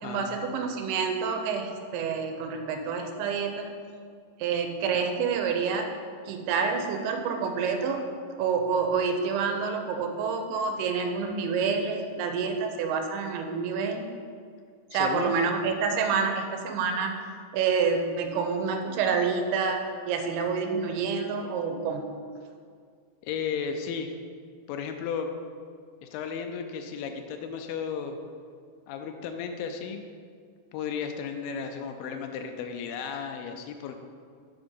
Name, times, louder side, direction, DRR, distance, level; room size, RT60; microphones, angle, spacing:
voice 1, 0.0-3.7 4.4-5.9 6.3-8.1 8.4-14.1 14.9-17.1 17.5-19.8 20.1-22.1, right 5 dB, 85° right, 4 dB, 2.7 m, -28 dB
voice 2, 14.9-15.4 23.2-24.1 24.7-25.3 26.0-28.2 28.9-30.0 30.7-34.0, left 6 dB, 90° left, 5 dB, 2.0 m, -34 dB
8.7 x 3.5 x 5.5 m, 2.1 s
omnidirectional pair, 4.6 m